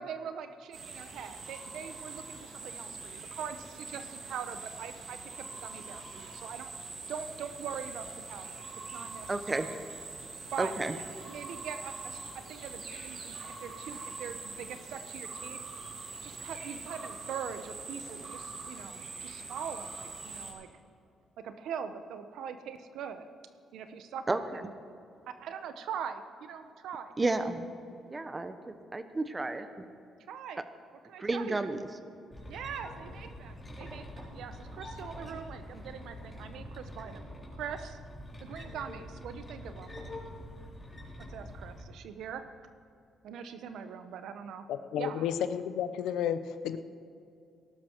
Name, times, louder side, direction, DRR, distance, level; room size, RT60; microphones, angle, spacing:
voice 1, 0.0-6.7 7.1-8.6 8.9-9.7 10.5-10.7 11.3-15.6 16.2-20.7 21.4-23.3 23.7-24.6 25.3-27.1 30.3-30.6 31.1-31.7 32.5-37.2 37.5-38.0 38.4-39.9 41.3-42.4 43.2-44.6 45.0-45.3, right 7 dB, 80° right, 9 dB, 1.0 m, -42 dB
sound 1, 0.7-20.5, right 3 dB, 60° right, 3.1 m, -43 dB
voice 2, 9.3-9.7 10.6-11.0 24.3-24.6 27.2-27.7 28.1-29.8 31.2-31.9, right 2 dB, 25° right, 10 dB, 1.1 m, -32 dB
sound 2, 32.3-41.8, left 1 dB, 20° left, 4.0 m, -45 dB
voice 3, 44.7-46.8, left 9 dB, 85° left, 11 dB, 0.7 m, -32 dB
18.0 x 12.0 x 4.6 m, 2.6 s
cardioid pair, 90°, 0 cm